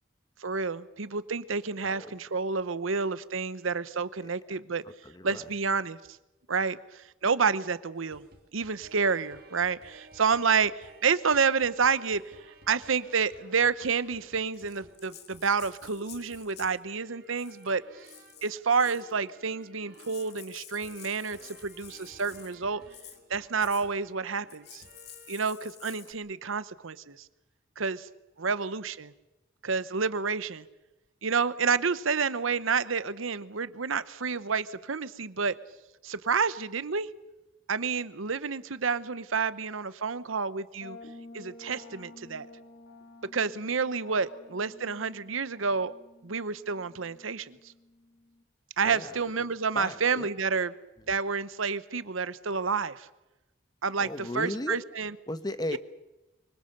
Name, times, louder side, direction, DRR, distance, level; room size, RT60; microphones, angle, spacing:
voice 1, 0.4-4.8 5.2-6.0 6.5-8.2 8.5-12.2 12.7-17.8 18.4-22.8 23.3-24.8 25.3-27.2 27.8-28.1 28.4-29.1 29.6-30.6 31.2-35.5 36.0-37.1 37.7-41.0 41.3-42.5 43.3-45.9 46.2-47.6 48.8-50.7 51.1-53.1 53.8-55.1 55.7-55.8, right 5 dB, 90° right, 16 dB, 0.9 m, -29 dB
voice 2, 5.0-5.5 48.8-49.5 49.7-50.3 54.0-54.8 55.3-55.8, left 1 dB, 20° left, 11 dB, 1.0 m, -36 dB
sound 1, 7.9-25.5 25.8-26.1, right 2 dB, 50° right, 2.9 m, -55 dB
Rattle (instrument), 14.5-16.8 17.3-17.7 18.0-19.1 19.6-19.7 19.9-22.6 22.9-23.2 23.6-23.9 24.5-26.1, left 11 dB, 55° left, 1.9 m, -50 dB
sound 2, 40.8-48.4, left 2 dB, 75° left, 2.5 m, -51 dB
24.5 x 23.5 x 6.8 m, 1.0 s
head